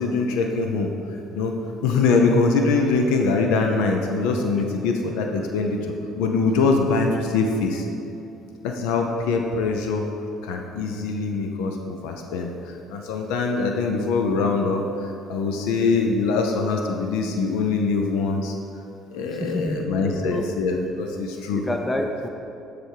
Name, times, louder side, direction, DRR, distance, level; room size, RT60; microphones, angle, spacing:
voice 1, 0.0-1.5 1.8-7.9 8.6-10.0 10.4-18.5 19.1-21.6, left 4 dB, 85° left, 3 dB, 0.5 m, -23 dB
voice 2, 19.3-20.4 21.5-22.3, left 1 dB, 10° left, 3 dB, 0.5 m, -29 dB
10.0 x 3.4 x 4.6 m, 2.9 s
cardioid pair, 95°, 0 cm